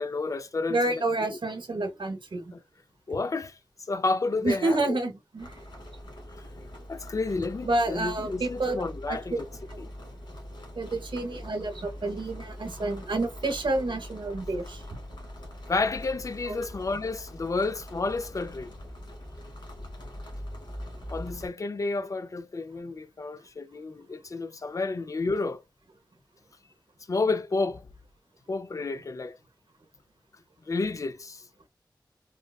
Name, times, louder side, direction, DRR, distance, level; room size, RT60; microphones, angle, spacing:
voice 1, 0.0-0.8 1.3-1.4 3.1-3.6 3.9-5.0 6.9-9.5 9.8-9.9 11.3-11.4 15.7-18.7 21.1-25.6 27.1-27.9 28.5-29.3 30.7-31.4, left 3 dB, 45° left, 0.4 m, -30 dB
voice 2, 0.7-2.5 4.4-5.6 7.6-9.4 9.7-9.8 10.8-14.8 16.5-16.6, right 2 dB, 80° right, 0.7 m, -29 dB
sound 1, 5.4-21.5, equal, 80° left, 1.6 m, -43 dB
3.7 x 2.2 x 2.2 m
wide cardioid pair, 65°, 8 cm